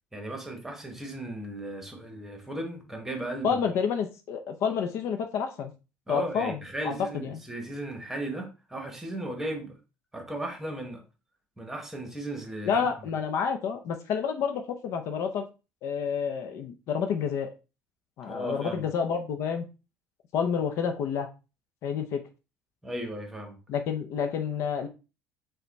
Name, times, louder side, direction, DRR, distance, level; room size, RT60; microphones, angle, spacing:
voice 1, 0.1-3.6 6.1-9.7 10.1-11.0 11.6-12.7 18.3-18.9 22.8-23.6, right 1 dB, 5° right, 3 dB, 1.1 m, -36 dB
voice 2, 3.4-5.7 6.1-6.6 6.8-6.9 7.2-7.4 12.7-15.4 15.8-17.5 18.2-19.6 20.3-21.3 21.8-22.2 23.7-24.9, left 7 dB, 60° left, 6 dB, 0.6 m, -29 dB
5.6 x 2.2 x 4.0 m, 0.30 s
cardioid pair, 155°, 6 cm